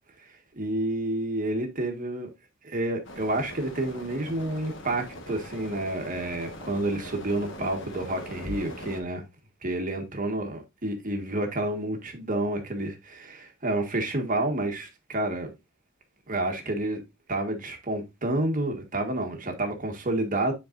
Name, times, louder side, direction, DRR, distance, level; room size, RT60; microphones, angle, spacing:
voice 1, 0.5-2.3 2.6-9.2 9.6-15.5 16.3-17.0 17.3-20.5, right 1 dB, 40° right, 1.5 m, -29 dB
sound 1, 3.0-9.0, left 1 dB, 65° left, 1.4 m, -41 dB
10.0 x 4.5 x 2.6 m
head